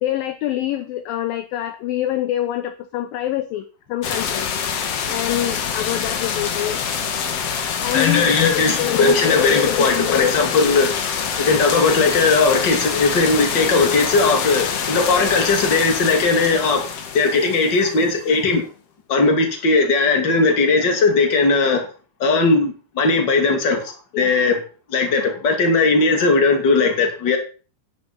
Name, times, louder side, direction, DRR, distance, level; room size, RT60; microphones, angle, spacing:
voice 1, 0.0-4.5 5.0-6.8 7.8-10.6 24.1-24.3, left 12 dB, 75° left, 9 dB, 2.3 m, -24 dB
sound 1, 4.0-18.3, left 7 dB, 55° left, 1.8 m, -25 dB
voice 2, 7.9-11.0 11.4-16.8 17.1-18.6 19.1-21.8 22.2-24.6 24.9-27.4, left 3 dB, 30° left, 4 dB, 2.6 m, -18 dB
10.5 x 9.8 x 5.5 m, 0.36 s
omnidirectional pair, 4.5 m